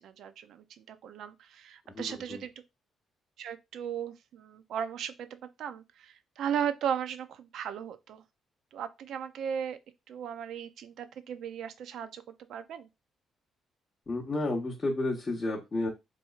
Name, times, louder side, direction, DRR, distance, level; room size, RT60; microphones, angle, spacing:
voice 1, 0.0-2.5 3.4-8.2 8.7-9.8 10.1-12.2 12.5-12.9, right 8 dB, 75° right, 0.4 m, -36 dB
voice 2, 1.9-2.4 14.1-15.9, left 2 dB, 30° left, 0.9 m, -31 dB
4.0 x 2.9 x 2.3 m
cardioid pair, 90°, 0 cm